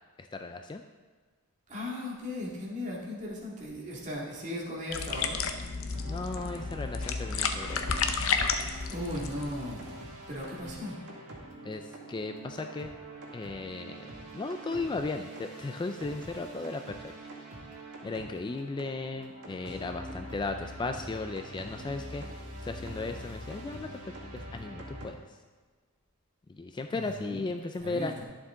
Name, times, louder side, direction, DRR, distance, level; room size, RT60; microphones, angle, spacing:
voice 1, 0.2-0.8 6.0-7.9 11.6-12.9 13.3-17.1 18.0-22.2 22.6-25.4 26.5-28.1, left 3 dB, 20° left, 6 dB, 0.3 m, -36 dB
voice 2, 1.7-5.4 8.9-10.0 10.3-11.0 26.9-27.4 27.8-28.2, left 1 dB, 35° right, -4 dB, 2.1 m, -37 dB
sound 1, 4.9-9.9, left 5 dB, 65° left, 0.7 m, -32 dB
sound 2, 5.9-25.1, right 1 dB, 80° right, 1.7 m, -44 dB
11.0 x 7.2 x 3.7 m, 1.5 s
head